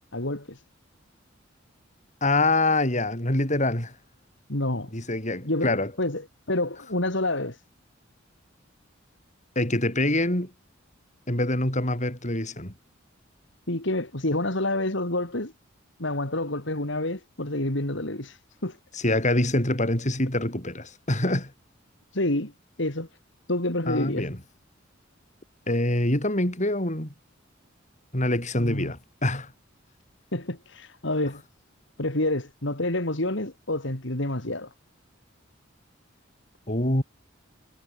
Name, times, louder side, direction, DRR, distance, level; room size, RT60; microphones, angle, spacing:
voice 1, 0.1-0.6 4.5-4.9 5.4-7.6 13.7-15.5 16.0-18.8 22.1-22.5 22.8-23.1 23.5-24.3 28.6-28.9 30.3-31.4 32.0-34.7, left 1 dB, 65° left, 3.6 m, -28 dB
voice 2, 2.2-3.9 4.9-5.9 9.6-10.5 11.3-12.7 18.9-21.5 23.9-24.4 25.7-27.1 28.1-29.5 36.7-37.0, left 1 dB, 40° left, 7.1 m, -25 dB
head